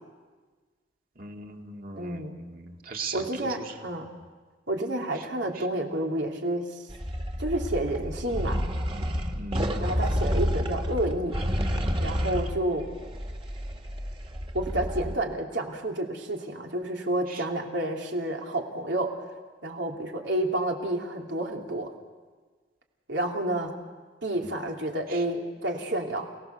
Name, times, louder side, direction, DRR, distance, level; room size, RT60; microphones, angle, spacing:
voice 1, 1.2-3.8 9.4-9.7 17.3-17.4 24.4-24.5 25.1-25.2, right 4 dB, 50° right, 2 dB, 2.2 m, -39 dB
voice 2, 2.0-2.3 3.1-4.1 4.7-6.8 7.4-8.6 9.8-11.4 12.0-12.8 14.5-19.1 19.6-21.9 23.1-23.8 24.2-26.3, right 1 dB, 85° right, 1 dB, 3.0 m, -30 dB
sound 1, 6.9-15.2, equal, 30° right, 1.8 m, -30 dB
29.0 x 19.0 x 6.9 m, 1.4 s
head